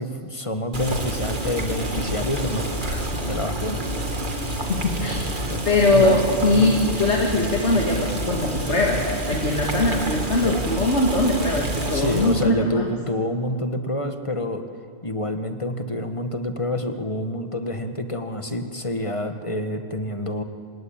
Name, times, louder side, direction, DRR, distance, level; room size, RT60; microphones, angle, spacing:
voice 1, 0.0-4.1 5.5-6.2 6.5-6.6 10.4-10.7 11.9-14.6 15.0-20.4, left 1 dB, 25° left, 7 dB, 1.5 m, -28 dB
Boiling, 0.7-12.5, right 1 dB, 40° right, 2.1 m, -28 dB
voice 2, 4.7-5.2 5.6-12.9, left 2 dB, 65° left, -1 dB, 2.7 m, -21 dB
27.0 x 18.0 x 8.9 m, 2.2 s
omnidirectional pair, 1.2 m